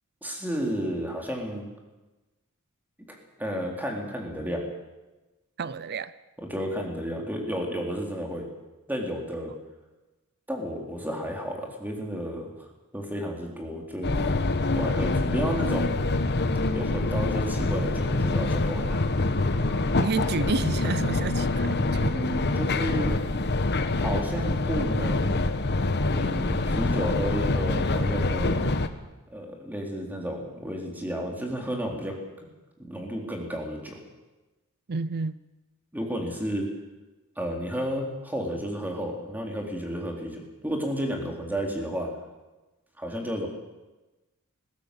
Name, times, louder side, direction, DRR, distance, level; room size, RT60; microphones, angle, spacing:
voice 1, 0.2-1.7 3.1-4.6 6.4-8.5 8.9-9.5 10.5-12.5 12.9-14.1 14.7-16.0 16.7-19.0 22.1-23.2 24.0-25.4 26.1-28.6 29.3-32.5 32.8-34.0 35.9-36.7 37.4-42.1 43.0-43.5, equal, 10° right, 3.9 m, -32 dB
voice 2, 5.6-6.1 20.0-22.2 34.9-35.4, right 4 dB, 45° right, 0.6 m, -30 dB
sound 1, 14.0-28.9, left 2 dB, 50° left, 1.2 m, -25 dB
20.5 x 16.5 x 8.5 m
head